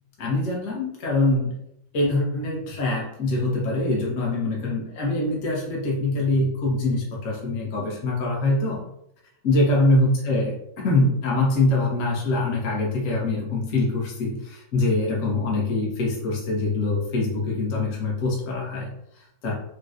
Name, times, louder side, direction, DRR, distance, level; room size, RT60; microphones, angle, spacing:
voice 1, 0.2-1.6 1.9-8.8 9.4-19.6, left 2 dB, 60° left, -3 dB, 0.8 m, -24 dB
4.0 x 2.1 x 2.4 m, 0.76 s
omnidirectional pair, 2.2 m